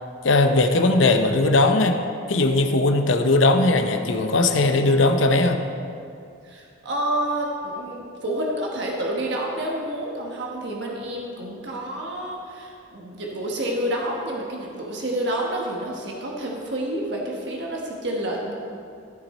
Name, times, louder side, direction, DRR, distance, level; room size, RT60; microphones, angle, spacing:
voice 1, 0.2-2.0 2.3-5.6, left 2 dB, 75° left, 6 dB, 0.7 m, -19 dB
voice 2, 6.4-18.5, right 1 dB, 60° right, -2 dB, 1.2 m, -29 dB
14.5 x 6.2 x 4.2 m, 2.5 s
head